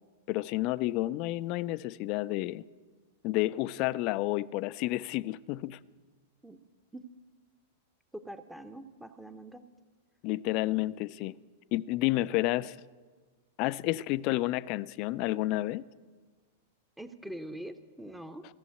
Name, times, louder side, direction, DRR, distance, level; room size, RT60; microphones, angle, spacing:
voice 1, 0.3-2.6 3.2-5.8 10.2-11.3 11.7-12.8 13.6-15.8, left 17 dB, 40° left, 0.3 m, -30 dB
voice 2, 8.1-9.6 17.0-18.5, right 1 dB, 5° right, 0.7 m, -43 dB
14.5 x 7.0 x 9.1 m
figure-of-eight pair, 95°, 0 cm